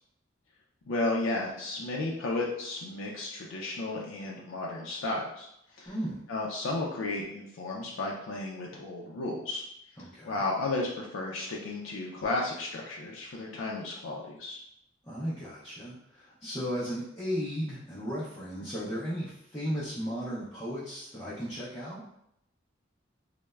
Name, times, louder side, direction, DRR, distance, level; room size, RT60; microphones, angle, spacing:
voice 1, 0.9-5.5 5.8-5.9 6.3-9.6 10.2-14.6, left 2 dB, 85° left, -2 dB, 0.4 m, -33 dB
voice 2, 5.9-6.2 10.0-10.4 15.0-22.0, equal, 15° left, -9 dB, 0.5 m, -35 dB
3.1 x 2.0 x 2.2 m, 0.77 s
head